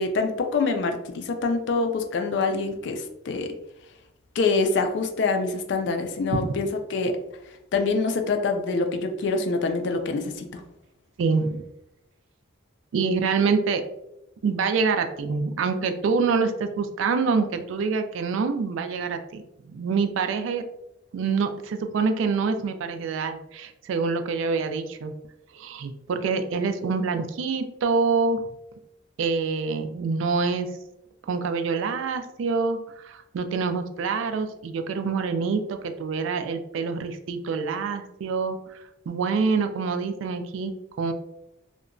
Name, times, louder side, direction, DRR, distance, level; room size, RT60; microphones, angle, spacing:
voice 1, 0.0-3.5 4.4-7.2 7.7-10.6, left 3 dB, 60° left, 6 dB, 0.3 m, -25 dB
voice 2, 11.2-11.6 12.9-13.8 14.4-20.6 21.1-25.1 25.5-28.4 29.2-30.7 31.3-41.1, right 4 dB, 75° right, 8 dB, 0.3 m, -26 dB
2.8 x 2.2 x 2.5 m, 0.84 s
head